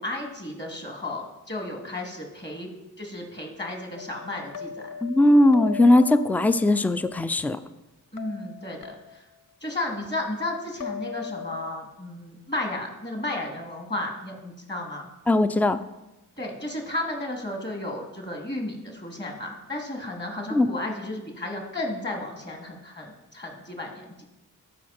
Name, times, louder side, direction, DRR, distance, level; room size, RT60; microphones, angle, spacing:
voice 1, 0.0-2.7 3.0-4.9 8.1-9.2 9.6-15.1 16.4-24.2, left 1 dB, 30° left, 1 dB, 2.6 m, -33 dB
sound 1, 3.9-7.2 8.2-9.4 10.8-11.7, left 6 dB, 65° left, 0.6 m, -39 dB
voice 2, 5.0-7.6 15.3-15.8 20.5-20.7, left 1 dB, 5° left, 12 dB, 0.4 m, -19 dB
13.0 x 5.0 x 4.3 m, 0.98 s
cardioid pair, 45°, 35 cm